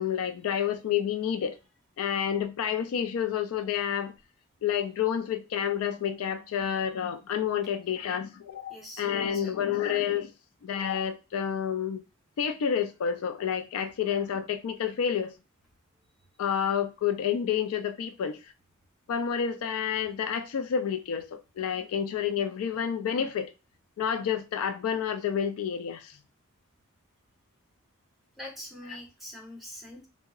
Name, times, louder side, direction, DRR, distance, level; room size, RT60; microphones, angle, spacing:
voice 1, 0.0-1.6 2.0-4.1 4.6-10.3 10.6-12.0 12.4-15.3 16.4-18.4 19.1-23.5 24.0-26.2, left 8 dB, 75° left, 0.3 m, -29 dB
voice 2, 8.7-9.8 28.4-30.1, left 1 dB, ahead, 0.7 m, -44 dB
3.6 x 2.0 x 2.3 m
head